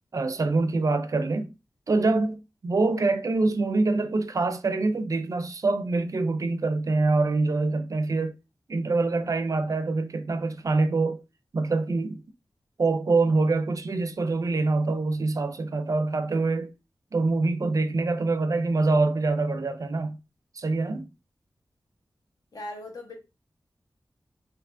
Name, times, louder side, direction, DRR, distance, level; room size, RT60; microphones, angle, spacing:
voice 1, 0.1-1.5 1.9-8.4 8.7-11.2 11.5-12.2 12.8-16.7 17.1-20.2 20.6-21.1, right 3 dB, 50° right, 0.4 m, -25 dB
voice 2, 22.5-23.2, left 1 dB, 60° left, 1.0 m, -38 dB
3.4 x 2.7 x 2.5 m
wide cardioid pair, 90°, 7 cm